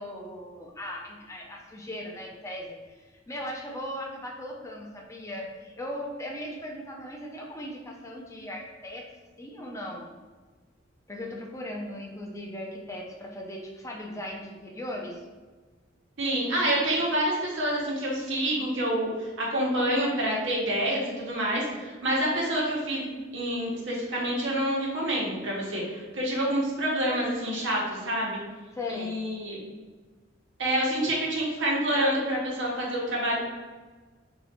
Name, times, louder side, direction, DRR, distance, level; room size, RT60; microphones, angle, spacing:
voice 1, 0.0-3.0 3.3-9.1 9.4-10.0 11.1-15.2 28.7-29.2, left 1 dB, 15° left, -1 dB, 0.5 m, -38 dB
voice 2, 16.2-28.4 28.9-29.6 30.6-33.4, right 1 dB, 80° right, -3 dB, 1.1 m, -27 dB
3.0 x 2.7 x 4.3 m, 1.4 s
head